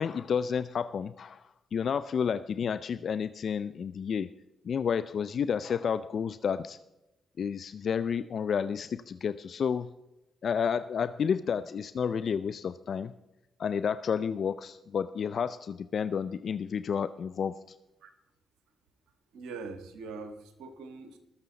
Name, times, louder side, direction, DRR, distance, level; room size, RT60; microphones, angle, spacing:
voice 1, 0.0-4.3 4.6-6.8 7.4-9.9 10.4-13.1 13.6-17.5, left 7 dB, 60° left, 14 dB, 0.4 m, -31 dB
voice 2, 19.3-21.2, right 4 dB, 85° right, 8 dB, 1.3 m, -42 dB
19.5 x 6.8 x 4.0 m, 0.95 s
supercardioid pair, 55°, 0 cm